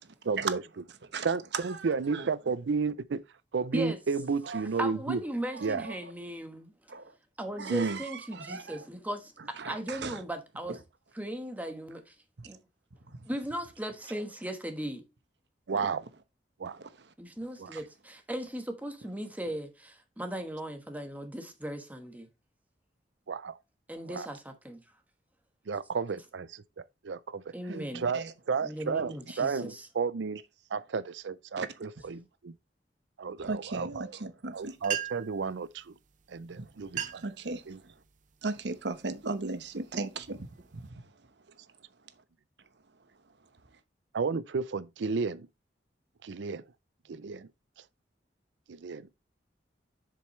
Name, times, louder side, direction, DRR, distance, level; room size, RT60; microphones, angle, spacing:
voice 1, 0.3-0.6 1.2-3.2 3.5-5.2 5.6-5.9 7.7-8.0 15.7-16.0 16.6-16.8 17.6-17.7 23.3-23.6 24.1-24.3 25.7-27.4 27.9-30.4 30.7-32.5 33.2-34.1 34.5-35.9 36.3-37.2 37.7-37.8 44.1-45.5 46.2-46.7 47.1-47.5 48.7-49.1, right 5 dB, 85° right, 0.5 m, -32 dB
voice 2, 1.5-2.3 4.4-4.7 5.5-6.1 6.9-7.1 7.6-8.9 9.4-10.2 10.7-10.8 12.4-12.5 13.1-13.2 15.7-15.9 16.6-17.1 17.7-17.8 27.7-28.3 31.6-31.7 33.4-34.8 36.6-37.9 38.4-41.1, right 3 dB, 70° right, 1.0 m, -38 dB
voice 3, 4.8-7.0 7.4-9.3 9.7-10.8 11.1-12.1 12.4-12.6 13.3-15.0 17.2-22.3 23.9-24.8 27.5-28.0 28.6-29.9, right 1 dB, 10° right, 1.3 m, -37 dB
sound 1, 34.5-34.6 34.8-35.4 36.3-36.4 36.8-37.4 37.9-38.2 38.8-39.1 39.6-40.9, right 9 dB, 45° right, 0.7 m, -38 dB
7.6 x 7.0 x 3.1 m
head